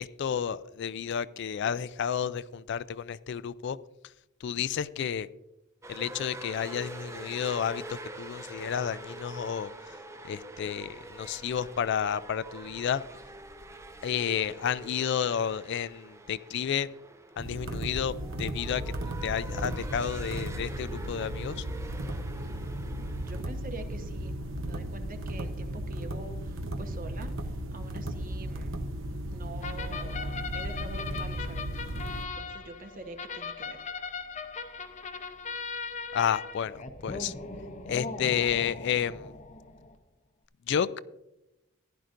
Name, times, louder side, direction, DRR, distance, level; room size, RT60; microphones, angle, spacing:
voice 1, 0.0-3.8 4.4-5.3 5.9-9.7 10.2-13.0 14.0-16.9 17.4-18.8 19.2-21.6 36.1-37.3 37.9-39.3 40.7-41.0, left 8 dB, 55° left, 16 dB, 0.3 m, -31 dB
sound 1, 5.8-23.4, right 2 dB, 15° right, 0.5 m, -45 dB
sound 2, 17.4-32.3, right 1 dB, 65° right, 0.9 m, -35 dB
voice 2, 22.4-24.3 24.6-28.8 29.3-31.9 32.3-33.8, right 2 dB, 40° right, 6 dB, 1.0 m, -45 dB
sound 3, 29.6-40.0, left 4 dB, 35° left, 0.7 m, -39 dB
15.0 x 10.5 x 2.6 m, 0.92 s
head